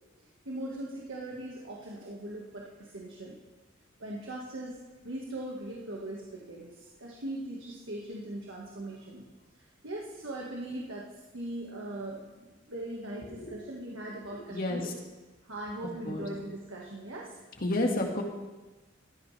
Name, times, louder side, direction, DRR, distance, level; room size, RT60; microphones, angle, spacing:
voice 1, 0.2-3.4 4.0-9.3 9.5-14.9 15.4-17.4, right 1 dB, 75° right, -3 dB, 1.7 m, -40 dB
voice 2, 14.3-14.9 16.1-16.3 17.6-18.2, left 2 dB, 45° left, 1 dB, 1.9 m, -31 dB
17.0 x 13.5 x 3.4 m, 1.2 s
head